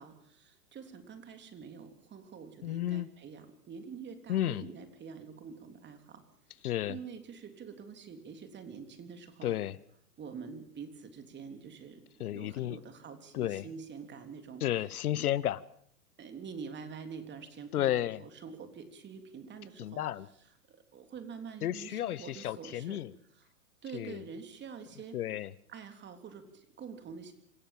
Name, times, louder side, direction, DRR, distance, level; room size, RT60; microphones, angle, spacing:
voice 1, 0.0-6.2 6.6-9.6 10.2-12.0 12.3-14.6 15.1-15.3 16.2-20.0 20.7-23.0 23.3-23.5 23.8-25.2 25.7-27.3, right 6 dB, 25° right, 7 dB, 3.6 m, -46 dB
voice 2, 2.6-3.1 4.3-4.6 6.6-7.0 9.4-9.8 12.2-12.8 13.3-13.6 14.6-15.6 17.7-18.2 19.8-20.3 21.6-23.1 23.9-24.2 25.1-25.5, left 12 dB, 70° left, 21 dB, 1.0 m, -32 dB
26.5 x 15.5 x 7.4 m, 0.68 s
hypercardioid pair, 115°, 46 cm